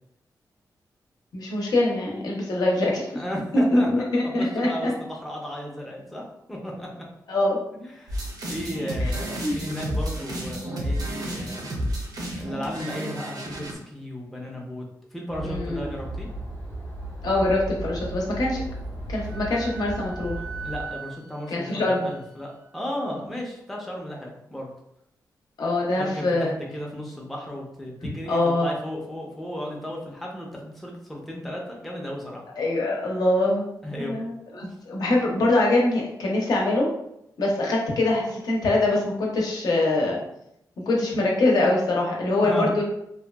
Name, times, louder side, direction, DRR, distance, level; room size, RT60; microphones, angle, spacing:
voice 1, 1.3-3.2 3.5-4.7 7.3-7.6 9.0-9.1 9.4-9.6 15.4-15.9 17.2-18.6 19.1-20.4 21.5-22.1 25.6-26.5 28.3-28.7 32.6-36.9 37.4-40.2 40.8-42.8, left 2 dB, 75° left, -2 dB, 0.6 m, -23 dB
voice 2, 3.1-6.2 6.5-6.9 7.7-11.7 12.4-14.8 15.1-16.3 20.6-24.7 25.9-32.4 33.8-34.2 42.4-42.7, equal, ahead, -2 dB, 0.4 m, -34 dB
sound 1, 8.1-13.7, equal, 65° right, 0.6 m, -31 dB
sound 2, 15.3-20.9, right 1 dB, 30° left, 0.7 m, -35 dB
Wind instrument woodwind instrument, 19.3-22.7, right 6 dB, 85° right, 1.0 m, -41 dB
2.6 x 2.2 x 2.2 m, 0.80 s
wide cardioid pair, 150°, 7 cm